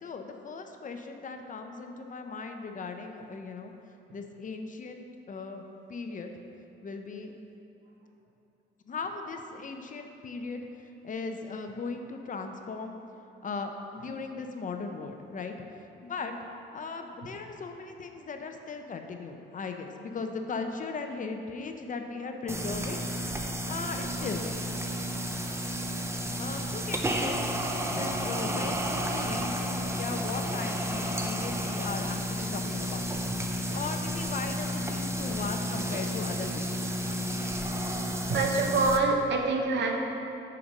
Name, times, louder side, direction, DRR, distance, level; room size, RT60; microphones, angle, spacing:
voice 1, 0.0-3.7 4.1-5.6 5.9-6.3 6.8-7.3 8.9-13.0 13.4-15.5 16.0-16.4 16.7-23.0 23.7-24.6 26.4-33.1 33.5-36.9, left 4 dB, 40° left, 5 dB, 0.7 m, -38 dB
sound 1, 22.5-39.0, equal, 15° right, 0.7 m, -32 dB
voice 2, 37.0-37.4 38.3-40.0, right 3 dB, 65° right, 2 dB, 1.0 m, -27 dB
6.7 x 5.3 x 5.4 m, 2.9 s
cardioid pair, 90°, 20 cm